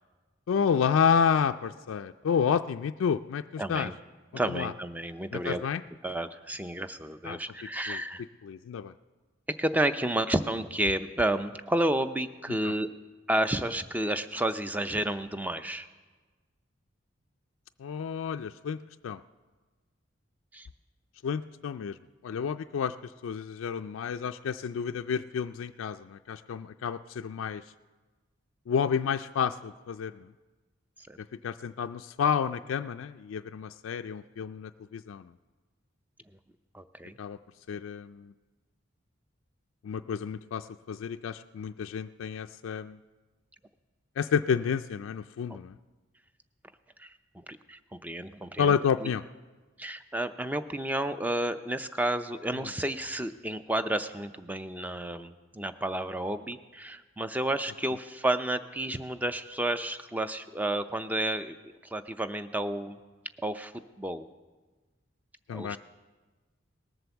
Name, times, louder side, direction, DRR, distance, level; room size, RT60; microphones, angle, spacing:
voice 1, 0.5-3.9 4.5-4.7 5.3-5.8 7.2-7.4 7.9-8.0 8.4-8.9 12.6-12.7 17.8-19.2 21.2-22.0 22.2-22.9 23.2-27.6 28.7-30.3 31.4-35.3 37.2-37.4 37.7-38.3 39.8-43.0 44.2-45.8 48.6-49.2 65.5-65.8, left 7 dB, 85° left, 8 dB, 0.3 m, -30 dB
voice 2, 3.6-3.9 4.3-5.6 6.0-8.2 9.6-12.9 13.3-15.9 20.5-20.7 31.1-31.2 36.7-37.2 45.5-45.6 47.0-47.1 47.5-48.8 49.0-49.1 49.8-61.6 61.8-63.0 63.4-63.7 64.0-64.3 65.5-65.8, right 1 dB, 10° right, 10 dB, 0.4 m, -31 dB
18.5 x 7.8 x 7.0 m, 1.3 s
head